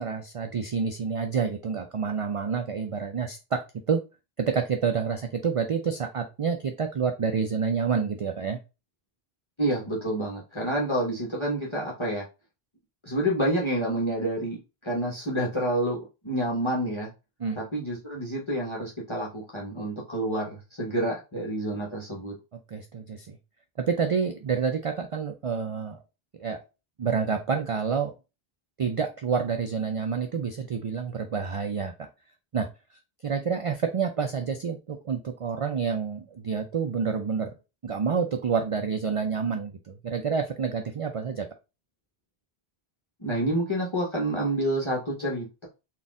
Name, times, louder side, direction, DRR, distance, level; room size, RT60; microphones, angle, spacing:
voice 1, 0.0-3.6 3.9-4.0 4.4-8.6 17.4-17.6 22.7-23.4 23.8-26.0 26.4-26.6 27.0-28.1 28.8-32.1 32.5-32.7 33.2-37.5 37.8-41.5, right 6 dB, 55° right, 6 dB, 0.3 m, -28 dB
voice 2, 9.6-12.2 13.0-16.0 16.2-17.1 17.5-22.3 43.2-45.6, right 1 dB, 30° left, -4 dB, 0.9 m, -28 dB
4.1 x 2.4 x 3.5 m, 0.28 s
omnidirectional pair, 1.0 m